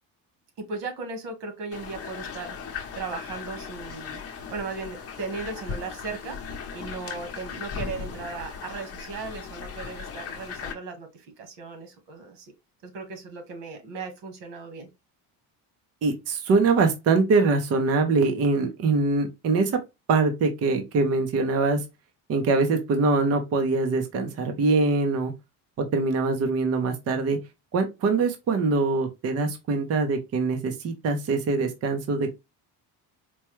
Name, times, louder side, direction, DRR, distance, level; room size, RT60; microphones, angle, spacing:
voice 1, 0.6-12.5 12.8-14.9, right 4 dB, 90° right, 1.6 m, -37 dB
sound 1, 1.7-10.7, left 6 dB, 35° left, 0.9 m, -37 dB
voice 2, 16.0-19.8 20.1-21.8 22.3-25.3 25.8-27.4 27.7-32.3, right 3 dB, 35° right, 0.7 m, -23 dB
4.5 x 2.2 x 3.1 m
cardioid pair, 155°, 41 cm